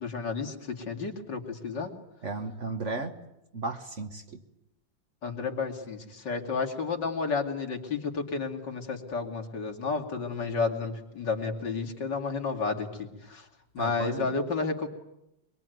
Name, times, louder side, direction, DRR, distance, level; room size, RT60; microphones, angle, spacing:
voice 1, 0.0-2.0 5.2-13.4 13.7-14.9, left 4 dB, 65° left, 1 dB, 3.2 m, -31 dB
voice 2, 2.2-3.1 3.5-4.4 13.8-14.4, right 3 dB, 40° right, 6 dB, 1.6 m, -35 dB
24.5 x 22.5 x 9.3 m, 0.87 s
omnidirectional pair, 2.0 m